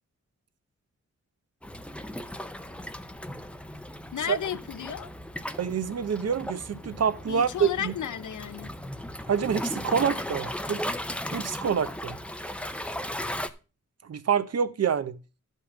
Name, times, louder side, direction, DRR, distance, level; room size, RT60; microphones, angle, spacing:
Waves surf, 1.6-13.5, left 1 dB, 5° left, 0.6 m, -36 dB
voice 1, 4.1-5.1 7.3-8.7, left 10 dB, 85° left, 0.7 m, -33 dB
voice 2, 5.6-7.9 9.3-10.8 11.3-12.2 14.0-15.2, right 7 dB, 60° right, 0.7 m, -27 dB
11.5 x 5.5 x 5.1 m
wide cardioid pair, 150°, 29 cm